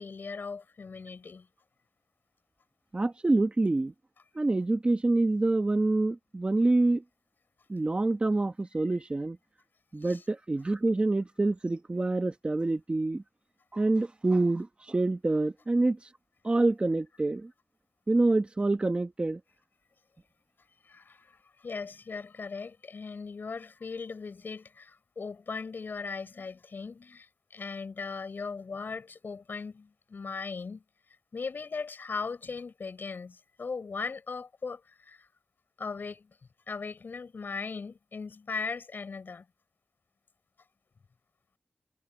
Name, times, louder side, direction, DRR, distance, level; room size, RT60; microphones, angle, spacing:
voice 1, 0.0-1.5 10.0-10.2 20.8-30.8 31.3-35.3 35.8-36.3 36.7-39.4, left 4 dB, 70° left, 6.9 m, -38 dB
voice 2, 2.9-3.9 4.3-7.0 7.7-9.4 9.9-13.2 13.7-16.0 16.4-17.5 18.1-19.4, right 2 dB, 30° right, 1.5 m, -26 dB
wide cardioid pair, 105°, 3 cm